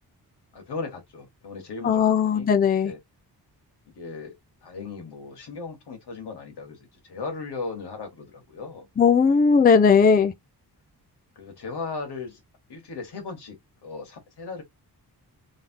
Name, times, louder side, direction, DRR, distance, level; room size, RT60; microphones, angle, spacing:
voice 1, 0.5-3.0 4.0-4.3 4.6-8.9 11.4-12.4 12.7-13.6 13.8-14.6, left 4 dB, 80° left, 2.1 m, -37 dB
voice 2, 1.8-2.9 9.0-10.3, left 6 dB, 25° left, 0.4 m, -18 dB
3.6 x 3.5 x 3.0 m
wide cardioid pair, 180°, 40 cm